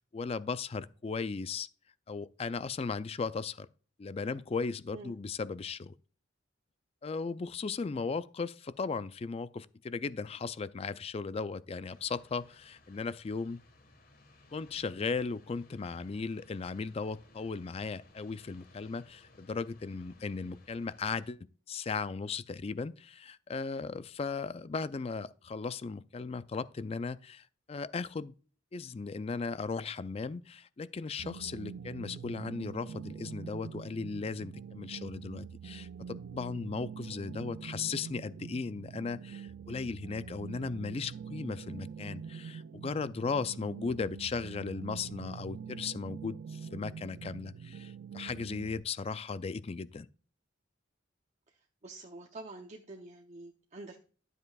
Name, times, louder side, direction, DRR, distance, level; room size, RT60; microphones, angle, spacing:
voice 1, 0.0-1.7 2.1-3.7 4.0-5.9 7.0-13.6 14.5-21.4 21.7-28.3 28.7-50.1, left 4 dB, 30° left, 0.3 m, -37 dB
sound 1, 11.8-21.3, left 2 dB, 50° left, 1.5 m, -61 dB
sound 2, 31.2-48.8, right 7 dB, 60° right, 0.3 m, -45 dB
voice 2, 51.8-54.0, right 2 dB, 35° right, 0.7 m, -47 dB
11.5 x 8.0 x 2.3 m
head